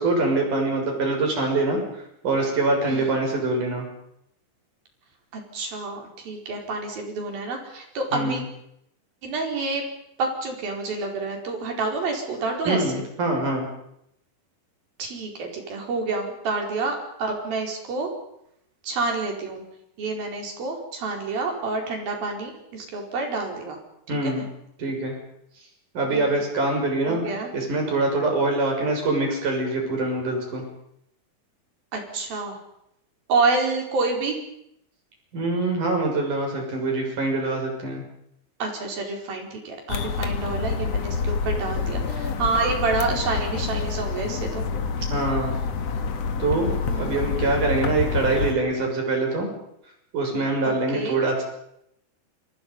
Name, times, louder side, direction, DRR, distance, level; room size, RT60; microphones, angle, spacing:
voice 1, 0.0-1.8 2.2-3.9 8.1-8.4 12.7-13.7 24.1-24.4 24.8-25.2 25.9-27.2 27.5-30.6 35.3-38.0 45.1-45.6 46.4-46.7 47.0-49.5 50.1-51.4, right 2 dB, 55° right, 2 dB, 8.0 m, -24 dB
voice 2, 5.3-8.4 9.2-9.8 10.2-13.0 15.0-18.1 18.8-19.6 20.0-23.8 24.2-24.5 26.1-26.4 27.1-27.5 31.9-32.6 33.3-34.4 38.6-44.7 46.9-47.3 50.6-51.2, right 3 dB, 70° right, 2 dB, 6.5 m, -28 dB
sound 1, 39.9-48.6, left 5 dB, 50° left, 2.4 m, -27 dB
27.5 x 25.0 x 5.6 m, 0.77 s
omnidirectional pair, 4.3 m